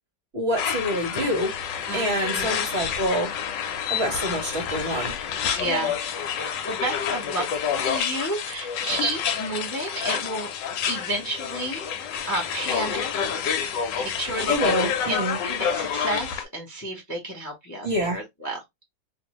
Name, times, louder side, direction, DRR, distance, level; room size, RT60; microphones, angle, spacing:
voice 1, 0.3-1.5 1.9-3.3 3.9-5.2 14.5-15.4 17.8-18.2, equal, 50° right, 0.9 m, -26 dB
sound 1, 0.6-16.4, left 7 dB, 85° left, 1.3 m, -28 dB
voice 2, 1.9-2.6 5.5-7.4 7.8-10.5 10.9-13.4 13.7-14.8 15.1-18.6, right 1 dB, 20° left, 0.5 m, -31 dB
2.6 x 2.6 x 2.9 m
omnidirectional pair, 1.9 m